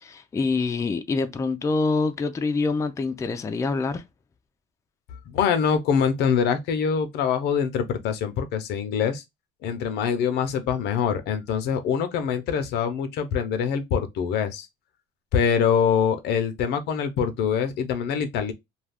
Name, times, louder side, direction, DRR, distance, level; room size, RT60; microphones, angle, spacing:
voice 1, 0.0-4.0, left 3 dB, 20° left, 0.4 m, -25 dB
voice 2, 5.3-9.2 9.6-14.7 15.3-18.5, left 7 dB, 80° left, 0.6 m, -24 dB
2.3 x 2.3 x 3.3 m
cardioid pair, 110°, 17 cm